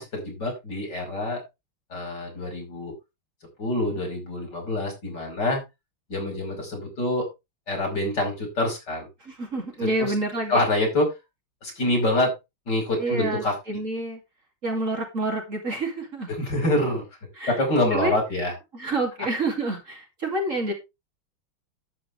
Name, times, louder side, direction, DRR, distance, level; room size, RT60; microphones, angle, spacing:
voice 1, 0.0-1.4 1.9-2.9 3.6-5.6 6.1-7.3 7.7-9.1 10.0-10.1 10.5-11.1 11.6-12.3 12.7-13.6 16.3-17.1 17.5-18.5, left 1 dB, 55° left, 5.9 m, -26 dB
voice 2, 9.2-10.6 13.0-14.2 14.6-16.3 17.4-17.6 17.9-18.1 18.7-20.7, right 2 dB, 40° right, 2.9 m, -28 dB
11.5 x 9.1 x 3.3 m
omnidirectional pair, 2.2 m